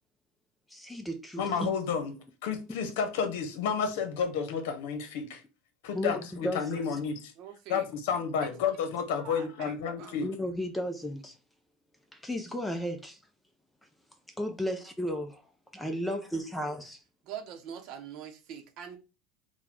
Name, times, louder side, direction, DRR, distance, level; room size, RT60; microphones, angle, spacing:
voice 1, 0.7-1.7 5.9-6.8 10.2-11.4 12.1-13.2 14.4-15.4 15.7-17.0, equal, 5° left, 0.5 m, -34 dB
voice 2, 1.4-2.1 2.4-5.4 5.8-7.3 7.7-10.3, left 6 dB, 75° left, 0.9 m, -31 dB
voice 3, 7.4-7.9 8.2-8.3 9.2-10.2 17.2-19.0, right 8 dB, 55° right, 0.7 m, -44 dB
4.1 x 2.2 x 4.2 m
supercardioid pair, 125°, 0 cm